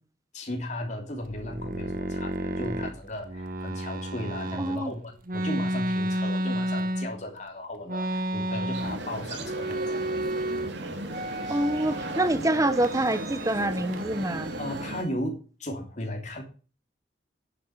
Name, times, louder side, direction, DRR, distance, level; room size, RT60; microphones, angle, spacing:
voice 1, 0.3-9.8 14.6-16.4, left 1 dB, 40° left, 3.2 m, -36 dB
sound 1, 1.2-4.8 5.3-7.4 7.9-9.1 9.4-10.7 11.1-12.3 12.8-13.7 13.9-15.1, right 1 dB, 50° right, 1.2 m, -32 dB
voice 2, 4.5-4.9 11.5-14.5, right 1 dB, 20° right, 1.0 m, -26 dB
sound 2, 8.7-15.0, right 1 dB, 85° right, 2.7 m, -36 dB
11.0 x 7.9 x 7.9 m
head